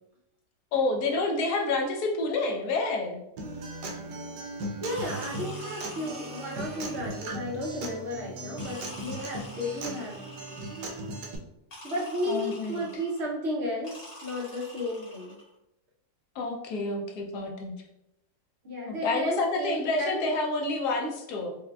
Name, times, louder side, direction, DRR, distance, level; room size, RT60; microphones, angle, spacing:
voice 1, 0.7-3.2 12.2-12.8 16.4-17.7 18.8-21.6, left 3 dB, 75° left, 2 dB, 1.1 m, -29 dB
Acoustic guitar, 3.4-11.4, right 2 dB, 85° right, 1.2 m, -38 dB
sound 1, 4.8-7.4 8.6-11.2 11.7-13.3 13.8-15.5, left 1 dB, 40° left, 1.1 m, -46 dB
voice 2, 4.8-10.1 11.8-15.4 18.6-20.3, equal, 60° right, -3 dB, 0.7 m, -33 dB
4.8 x 2.1 x 2.2 m, 0.85 s
omnidirectional pair, 1.7 m